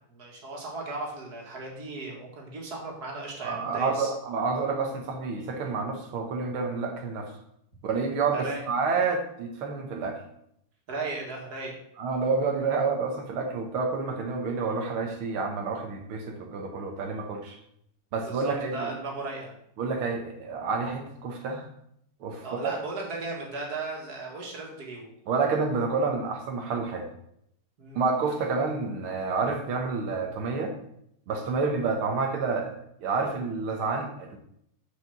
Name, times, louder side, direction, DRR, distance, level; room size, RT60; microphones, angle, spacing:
voice 1, 0.1-4.1 8.3-8.6 10.9-11.8 18.3-19.5 22.4-25.1 27.8-28.0, right 3 dB, 50° right, -1 dB, 2.5 m, -36 dB
voice 2, 3.4-7.3 7.8-10.2 12.0-17.6 18.1-18.9 19.8-21.7 22.2-22.7 25.3-27.1 28.0-30.7 31.3-34.4, right 4 dB, 85° right, 2 dB, 2.0 m, -29 dB
6.8 x 5.0 x 7.1 m, 0.72 s
omnidirectional pair, 2.3 m